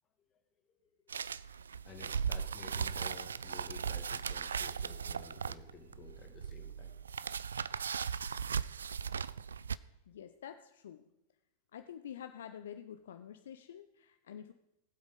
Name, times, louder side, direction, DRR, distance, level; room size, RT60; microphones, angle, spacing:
sound 1, 1.1-9.8, right 6 dB, 70° right, 0.3 m, -38 dB
voice 1, 1.8-7.0, left 7 dB, 30° left, 5 dB, 2.0 m, -53 dB
voice 2, 10.1-11.0 11.7-14.5, left 9 dB, 60° left, 9 dB, 0.6 m, -48 dB
19.0 x 8.0 x 5.3 m, 0.90 s
figure-of-eight pair, 90°, 0 cm